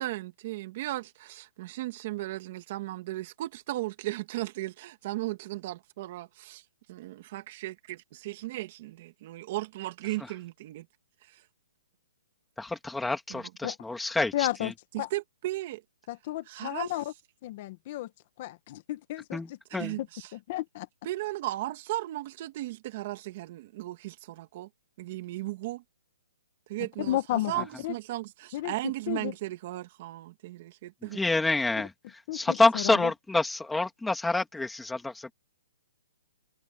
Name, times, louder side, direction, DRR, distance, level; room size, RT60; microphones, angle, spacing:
voice 1, 0.0-6.6 6.9-10.9 11.3-11.4 13.3-13.4 14.9-15.8 16.5-16.9 19.7-20.3 21.0-24.7 25.0-25.8 26.7-31.2, right 17 dB, 30° right, 2.3 m, -36 dB
voice 2, 12.6-14.7 19.3-20.0 27.5-27.7 31.0-35.3, left 2 dB, 5° left, 2.0 m, -28 dB
voice 3, 14.3-14.7 15.0-15.1 16.1-17.1 17.4-18.1 18.4-19.4 19.7-19.9 20.3-20.9 27.0-27.5 27.8-27.9 28.5-28.7 29.1-29.3 32.3-33.0, left 15 dB, 30° left, 1.2 m, -32 dB
hypercardioid pair, 175°, 0 cm